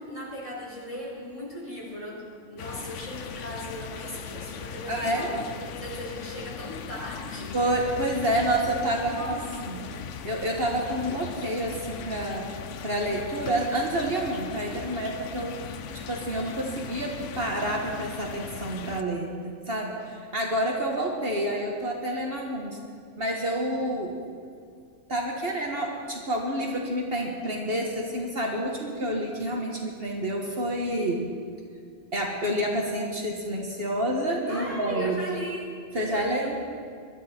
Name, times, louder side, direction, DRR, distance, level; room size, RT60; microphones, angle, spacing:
voice 1, 0.0-5.4 5.8-7.6 9.0-9.4 9.7-9.9 34.5-36.5, equal, 25° left, -4 dB, 4.3 m, -37 dB
sound 1, 2.6-19.0, left 8 dB, 75° left, 1.0 m, -39 dB
voice 2, 4.8-5.3 7.5-9.8 10.2-12.5 12.8-15.6 16.1-22.8 23.2-24.1 25.1-31.3 32.1-35.2 35.9-36.6, right 1 dB, 50° right, 0 dB, 1.8 m, -28 dB
23.0 x 12.5 x 4.4 m, 2.3 s
omnidirectional pair, 1.3 m